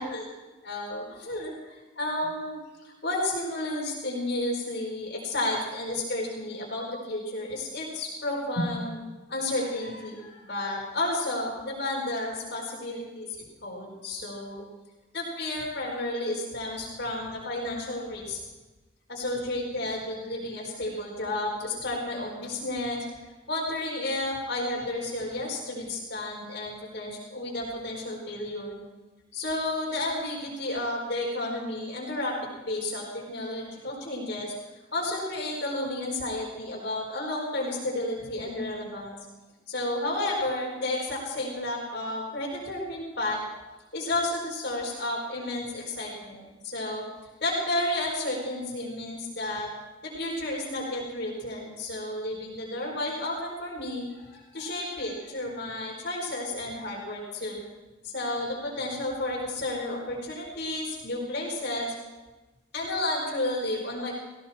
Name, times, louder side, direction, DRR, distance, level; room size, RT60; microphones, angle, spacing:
voice 1, 0.7-9.0 9.3-14.6 15.1-18.4 19.1-23.0 23.5-28.7 29.3-34.5 34.9-39.2 39.7-43.4 43.9-47.0 47.4-49.7 50.0-57.6 58.0-61.9 62.7-64.1, left 1 dB, 60° left, -3 dB, 4.9 m, -32 dB
18.0 x 18.0 x 4.5 m, 1.2 s
head